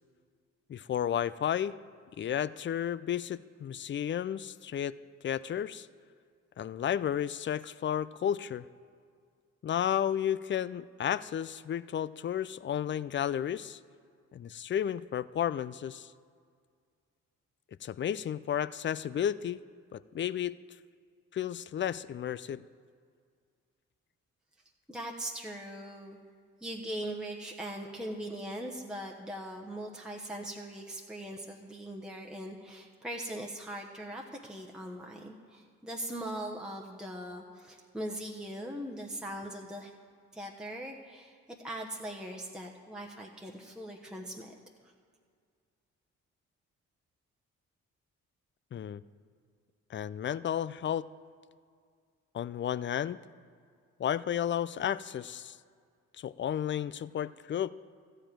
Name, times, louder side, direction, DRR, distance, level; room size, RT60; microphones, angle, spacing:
voice 1, 0.7-1.7 2.2-5.0 5.2-5.9 6.6-8.6 9.6-13.8 14.3-16.1 17.8-19.6 19.9-20.6 21.3-22.6 48.7-49.0 49.9-51.1 52.3-53.2 54.0-55.6 56.2-57.7, left 9 dB, 35° left, 18 dB, 0.4 m, -32 dB
voice 2, 24.9-26.2 26.6-39.9 40.3-44.5, right 1 dB, ahead, -1 dB, 1.1 m, -40 dB
13.0 x 4.9 x 8.9 m, 2.1 s
supercardioid pair, 45°, 33 cm